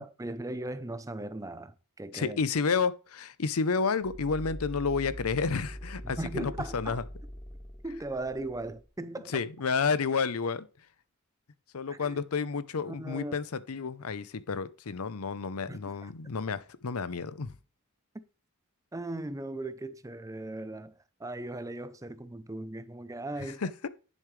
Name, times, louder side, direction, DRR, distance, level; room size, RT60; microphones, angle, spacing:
voice 1, 0.0-2.4 6.0-6.9 7.8-9.4 11.9-12.2 12.9-13.4 15.7-16.1 18.9-23.6, right 2 dB, 15° right, 0.5 m, -38 dB
voice 2, 2.1-7.0 9.3-10.7 11.7-17.5 23.4-23.9, left 5 dB, 75° left, 0.7 m, -30 dB
sound 1, 4.0-8.9, equal, 15° left, 1.2 m, -43 dB
10.0 x 7.3 x 3.2 m
head